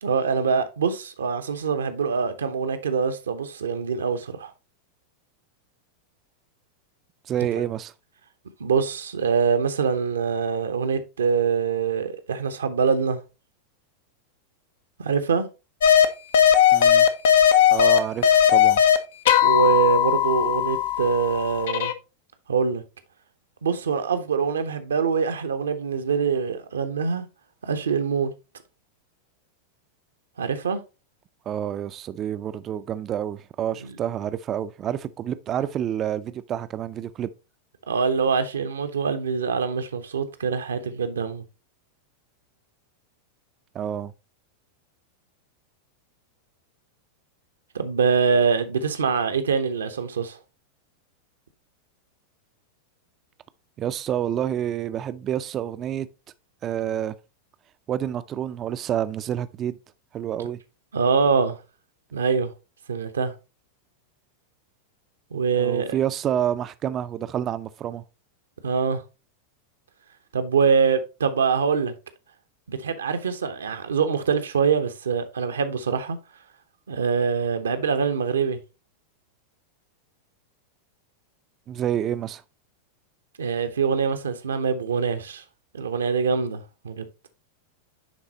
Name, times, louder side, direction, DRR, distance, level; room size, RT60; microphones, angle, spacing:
voice 1, 0.0-4.5 8.6-13.2 15.0-15.5 19.4-21.9 22.5-22.8 23.6-27.2 27.6-28.3 30.4-30.8 37.9-41.4 47.7-50.4 60.9-61.6 62.1-62.5 62.9-63.3 65.3-65.9 68.6-69.0 70.3-71.9 72.7-76.2 76.9-78.6 83.4-85.4 85.7-87.0, right 6 dB, 70° right, 0.9 m, -24 dB
voice 2, 7.3-7.9 16.7-17.1 17.7-18.8 31.5-37.3 43.7-44.1 53.8-56.1 56.6-57.1 57.9-59.8 60.1-60.6 65.6-68.0 81.7-82.4, right 10 dB, 30° right, 0.5 m, -28 dB
sound 1, 15.8-16.1 16.3-19.0 19.3-21.9, left 9 dB, 60° left, 0.6 m, -18 dB
10.5 x 4.0 x 2.9 m
figure-of-eight pair, 90°, 0 cm